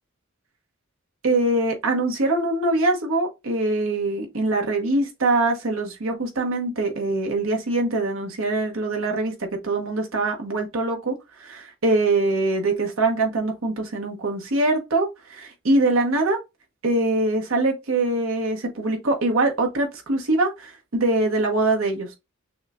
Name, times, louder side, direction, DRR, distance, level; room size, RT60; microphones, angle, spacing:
voice 1, 1.2-16.4 16.8-22.2, right 2 dB, 70° right, 1.0 m, -23 dB
6.2 x 2.2 x 2.4 m
head